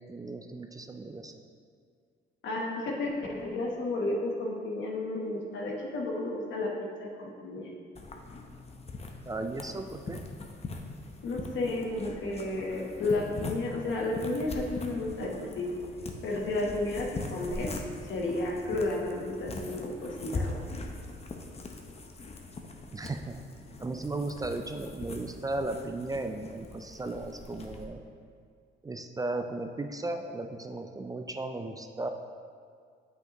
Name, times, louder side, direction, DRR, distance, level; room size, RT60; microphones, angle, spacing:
voice 1, 0.1-1.3 9.3-10.2 22.9-23.3 23.8-28.0 28.8-32.1, right 2 dB, 20° right, 6 dB, 0.3 m, -35 dB
voice 2, 2.4-7.7 11.2-15.7 16.2-17.7 18.0-20.7, left 2 dB, 70° left, -1 dB, 1.2 m, -32 dB
sound 1, 8.0-27.9, left 3 dB, 30° left, 0.7 m, -41 dB
7.7 x 5.7 x 3.0 m, 2.1 s
cardioid pair, 90°, 20 cm